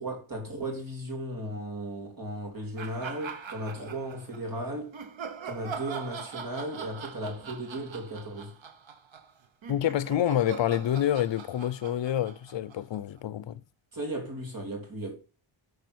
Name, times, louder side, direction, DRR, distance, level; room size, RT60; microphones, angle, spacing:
voice 1, 0.0-5.0 5.4-8.5 13.9-15.2, right 1 dB, 40° right, 3.5 m, -36 dB
sound 1, 2.8-4.4 4.9-13.2, right 6 dB, 65° right, 1.2 m, -42 dB
voice 2, 9.7-13.6, left 11 dB, 60° left, 0.6 m, -27 dB
9.6 x 5.0 x 6.2 m
wide cardioid pair, 110°, 49 cm